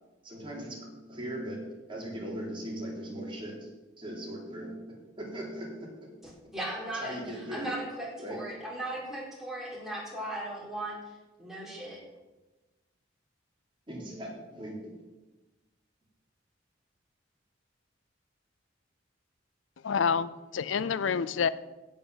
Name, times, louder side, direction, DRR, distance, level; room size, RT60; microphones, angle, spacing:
voice 1, 0.2-6.3 6.9-7.7 8.2-8.5 13.9-15.0, right 1 dB, 25° right, -3 dB, 3.7 m, -39 dB
voice 2, 6.5-11.0 11.4-12.0, right 1 dB, ahead, -5 dB, 4.6 m, -37 dB
voice 3, 19.8-21.5, left 6 dB, 85° left, 17 dB, 0.5 m, -28 dB
16.0 x 5.6 x 7.5 m, 1.1 s
head